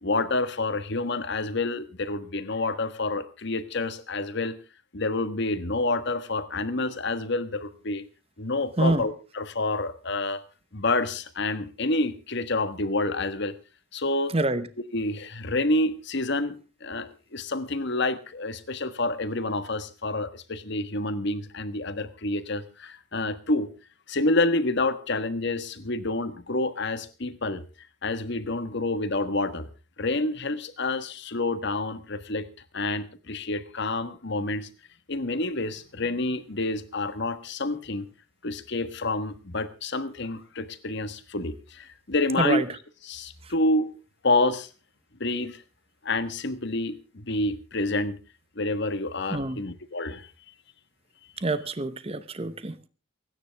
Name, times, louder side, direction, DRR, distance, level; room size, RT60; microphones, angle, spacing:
voice 1, 0.0-4.6 4.9-8.0 8.4-10.4 10.7-13.5 13.9-14.3 14.9-23.7 24.1-27.6 28.0-29.7 30.0-32.5 32.7-34.7 35.1-38.1 38.4-42.6 43.1-43.9 44.2-44.7 45.2-45.6 46.0-48.2 48.5-50.3, left 2 dB, 60° left, 1.4 m, -28 dB
voice 2, 14.3-14.7 42.4-42.8 43.4-43.5 49.3-49.6 51.4-52.9, right 2 dB, 30° right, 0.9 m, -27 dB
29.0 x 9.8 x 3.5 m
head